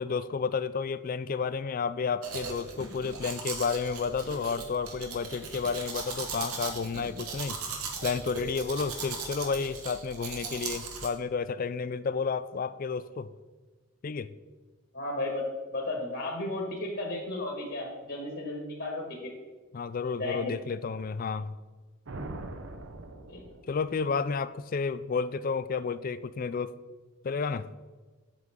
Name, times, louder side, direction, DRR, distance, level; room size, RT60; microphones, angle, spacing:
voice 1, 0.0-7.6 8.0-13.3 14.0-14.3 19.7-21.5 23.7-26.8 27.2-27.7, left 5 dB, 40° left, 0.3 m, -31 dB
Domestic sounds home sounds, 2.2-11.1, right 4 dB, 85° right, 1.4 m, -38 dB
voice 2, 14.9-15.4 15.7-19.3 20.2-20.5 23.3-23.4, left 2 dB, 55° left, 1.7 m, -34 dB
sound 1, 22.1-24.0, right 2 dB, 55° right, 0.7 m, -42 dB
9.1 x 7.8 x 3.7 m
head